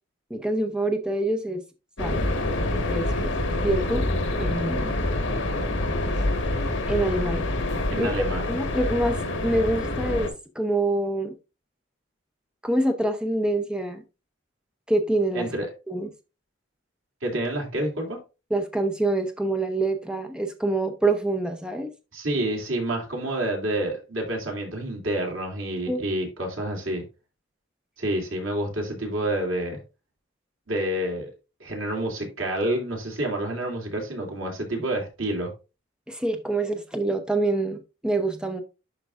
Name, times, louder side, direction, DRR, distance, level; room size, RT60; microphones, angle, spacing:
voice 1, 0.3-1.6 2.0-2.2 2.9-3.3 3.6-4.9 6.9-7.4 8.0-8.1 8.5-11.3 12.6-14.0 14.9-15.5 15.9-16.1 18.5-21.9 25.9-26.0 36.1-38.6, right 2 dB, 5° right, 0.7 m, -26 dB
sound 1, 2.0-10.3, left 1 dB, 70° left, 1.6 m, -26 dB
voice 2, 7.9-8.5 15.3-15.7 17.2-18.2 22.1-27.0 28.0-29.8 30.7-31.3 31.6-35.5, right 1 dB, 85° right, 2.7 m, -28 dB
11.0 x 4.5 x 2.5 m
head